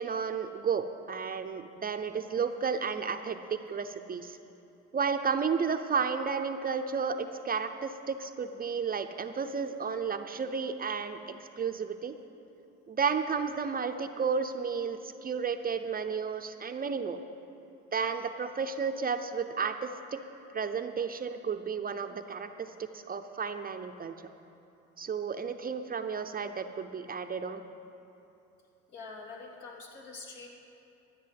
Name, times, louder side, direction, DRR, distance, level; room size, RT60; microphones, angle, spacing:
voice 1, 0.0-4.4 4.9-12.1 12.9-17.2 17.9-20.3 20.5-22.5 22.9-24.1 25.0-27.6, right 6 dB, 30° right, 7 dB, 0.6 m, -32 dB
voice 2, 28.9-30.5, left 3 dB, 65° left, -1 dB, 2.9 m, -45 dB
13.0 x 9.1 x 7.6 m, 2.8 s
cardioid pair, 100°, 31 cm